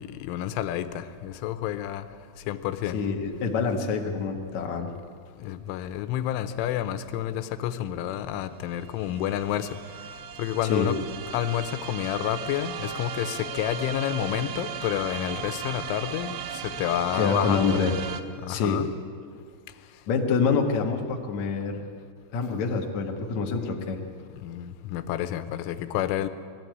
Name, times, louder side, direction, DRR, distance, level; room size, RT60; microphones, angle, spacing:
voice 1, 0.0-2.1 2.5-3.0 5.4-9.8 10.4-11.0 11.3-17.8 18.4-18.9 24.4-26.3, left 11 dB, 90° left, 11 dB, 3.3 m, -29 dB
voice 2, 2.9-4.9 10.7-10.9 17.1-17.9 18.5-18.8 20.1-21.8 22.3-24.0, left 5 dB, 70° left, 2 dB, 1.7 m, -26 dB
sound 1, 8.0-8.1 8.3-18.2, right 8 dB, 85° right, 3.2 m, -37 dB
21.0 x 14.0 x 9.3 m, 2.1 s
omnidirectional pair, 5.5 m